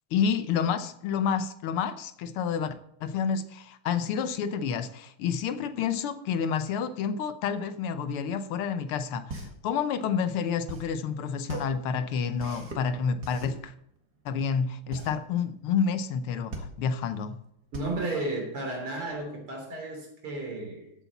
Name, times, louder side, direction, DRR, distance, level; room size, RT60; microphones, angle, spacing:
voice 1, 0.1-2.7 3.0-13.7 14.3-17.4, left 6 dB, 80° left, 11 dB, 1.7 m, -29 dB
sound 1, 9.3-19.2, right 2 dB, 45° right, 2.3 m, -41 dB
voice 2, 17.7-20.9, right 2 dB, 75° right, 1 dB, 4.1 m, -33 dB
14.0 x 8.1 x 4.1 m, 0.74 s
omnidirectional pair, 2.4 m